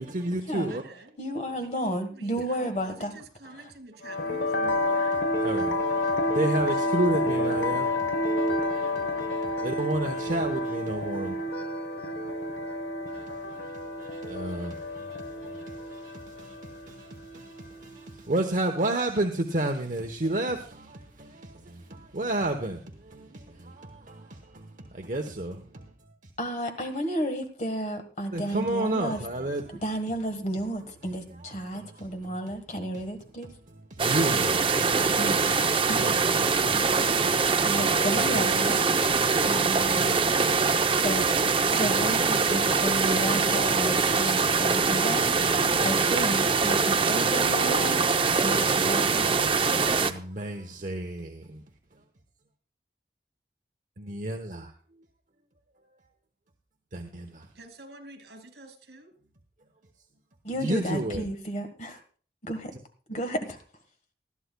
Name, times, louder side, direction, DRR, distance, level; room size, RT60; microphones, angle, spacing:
voice 1, 0.0-0.8 5.0-5.1 5.4-11.4 13.1-13.2 13.5-25.9 28.3-29.8 31.3-32.3 33.9-34.6 36.0-36.4 50.0-51.6 54.0-54.7 56.9-57.5 60.6-61.2, right 1 dB, 45° right, 0.9 m, -32 dB
voice 2, 0.7-1.1 1.6-5.2 6.3-6.8 57.5-59.1, right 2 dB, 75° right, 2.6 m, -48 dB
voice 3, 1.2-3.1 26.4-29.2 29.8-33.5 35.2-36.1 36.7-38.9 39.4-40.2 40.9-41.3 41.7-48.0 48.4-49.5 50.1-50.2 60.4-62.0 62.4-62.7 63.1-63.6, equal, 40° left, 1.4 m, -32 dB
sound 1, 4.0-18.1, left 1 dB, 75° left, 0.9 m, -29 dB
sound 2, 34.0-50.1, right 4 dB, 30° right, 0.6 m, -23 dB
19.5 x 12.5 x 2.2 m
head